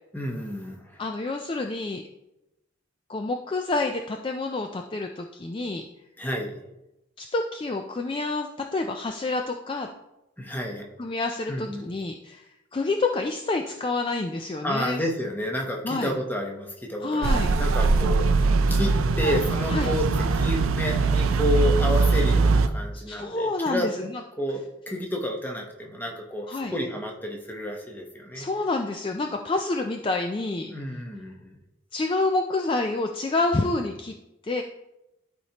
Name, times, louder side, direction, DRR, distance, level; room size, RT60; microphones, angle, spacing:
voice 1, 0.1-1.0 6.2-6.6 10.4-10.9 11.5-11.9 14.6-23.9 24.4-28.5 30.7-31.5, left 1 dB, 10° left, 1 dB, 0.9 m, -30 dB
voice 2, 1.0-2.0 3.1-5.8 7.2-9.9 11.0-15.0 15.8-16.1 17.0-17.5 19.7-19.9 23.1-24.2 26.5-26.7 28.3-30.7 31.9-34.1 34.4-34.6, left 3 dB, 25° left, 4 dB, 0.3 m, -28 dB
sound 1, 17.2-22.7, right 4 dB, 90° right, 0.5 m, -21 dB
12.0 x 4.3 x 2.9 m, 0.91 s
head